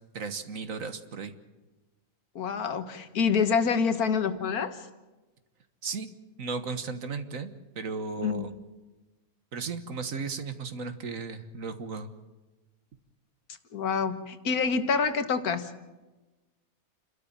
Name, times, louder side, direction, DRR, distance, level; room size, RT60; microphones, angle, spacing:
voice 1, 0.1-1.3 5.8-6.1 6.4-8.5 9.5-12.1, right 4 dB, 65° right, 9 dB, 1.7 m, -35 dB
voice 2, 2.4-4.8 8.2-8.4 13.7-15.7, left 5 dB, 85° left, 9 dB, 1.8 m, -27 dB
29.0 x 13.0 x 7.4 m, 1.1 s
omnidirectional pair, 1.5 m